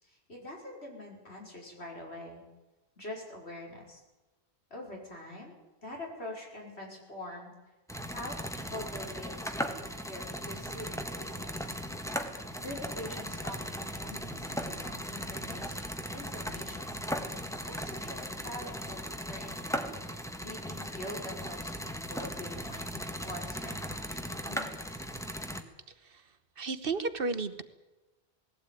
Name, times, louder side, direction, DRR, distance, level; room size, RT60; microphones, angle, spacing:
voice 1, 0.0-2.4 3.0-4.0 4.7-5.6 5.8-7.5 8.1-9.7 10.1-11.8 12.6-15.9 16.1-17.0 17.6-19.6 20.4-21.7 22.1-25.0, left 1 dB, 80° left, -1 dB, 5.8 m, -44 dB
sound 1, 7.9-25.6, equal, 5° left, 1.5 m, -38 dB
voice 2, 26.6-27.6, right 4 dB, 60° right, 12 dB, 1.3 m, -33 dB
20.0 x 16.0 x 9.2 m, 1.1 s
omnidirectional pair, 1.1 m